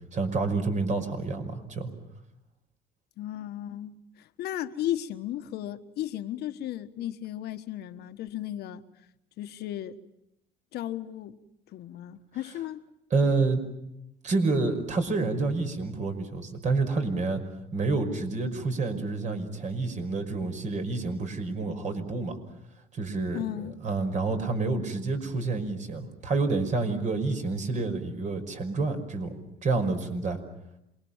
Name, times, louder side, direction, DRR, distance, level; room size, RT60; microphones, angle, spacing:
voice 1, 0.1-1.9 13.1-13.6 14.2-17.4 17.7-22.4 22.9-30.4, right 3 dB, 45° right, 5.5 m, -28 dB
voice 2, 3.2-8.8 9.4-10.0 10.7-11.4 11.7-12.8 23.3-23.8, left 12 dB, 75° left, 1.4 m, -35 dB
27.5 x 22.5 x 7.3 m
cardioid pair, 110°, 17 cm